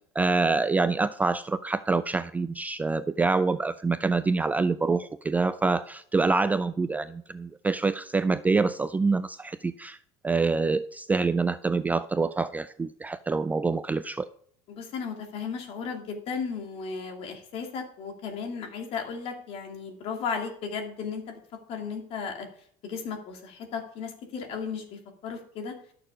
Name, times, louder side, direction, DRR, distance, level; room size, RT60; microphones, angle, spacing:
voice 1, 0.2-10.0 10.2-14.3, right 4 dB, 15° right, 13 dB, 0.3 m, -26 dB
voice 2, 14.7-21.4 21.7-22.5 22.8-25.7, left 5 dB, 55° left, 3 dB, 2.6 m, -35 dB
12.5 x 6.8 x 5.0 m, 0.62 s
supercardioid pair, 125°, 12 cm